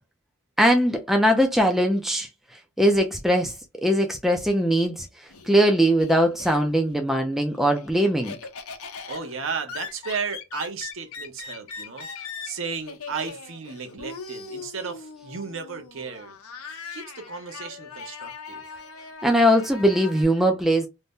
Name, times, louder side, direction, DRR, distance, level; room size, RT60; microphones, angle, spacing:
voice 1, 0.6-2.3 2.8-3.5 3.8-5.1 5.4-8.4 19.2-20.9, equal, ahead, 0.3 m, -20 dB
Laughter, 4.9-7.0 7.3-20.2, left 5 dB, 75° left, 0.6 m, -40 dB
voice 2, 9.1-12.1 12.4-16.4 16.9-18.6, right 5 dB, 60° right, 0.6 m, -34 dB
2.6 x 2.0 x 3.5 m
head